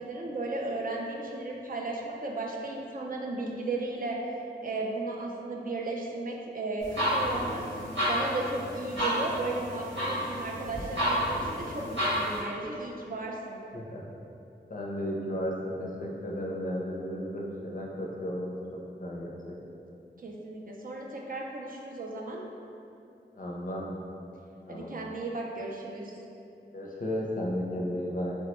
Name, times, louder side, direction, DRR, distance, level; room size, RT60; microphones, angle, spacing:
voice 1, 0.0-4.2 4.6-7.6 8.1-13.6 20.2-22.4 24.7-26.2, right 2 dB, 50° right, -2 dB, 0.4 m, -35 dB
sound 1, 6.8-12.4, equal, 85° right, 1.2 m, -31 dB
voice 2, 14.7-19.4 23.3-23.8 24.6-24.9 26.7-28.4, equal, 45° left, -2 dB, 0.4 m, -34 dB
3.2 x 2.1 x 2.9 m, 2.7 s
wide cardioid pair, 70°, 19 cm